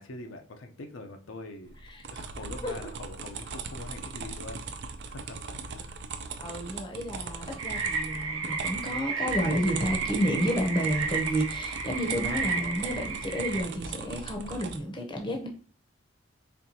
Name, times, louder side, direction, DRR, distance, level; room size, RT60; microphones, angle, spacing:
voice 1, 0.0-1.8 2.1-6.0, left 2 dB, 75° left, 5 dB, 0.6 m, -44 dB
sound 1, 1.7-14.8, right 4 dB, 55° right, 0.4 m, -39 dB
voice 2, 6.4-15.5, equal, 25° left, 3 dB, 0.6 m, -31 dB
sound 2, 7.6-13.6, right 5 dB, 80° right, 0.7 m, -33 dB
4.4 x 3.2 x 2.7 m, 0.40 s
head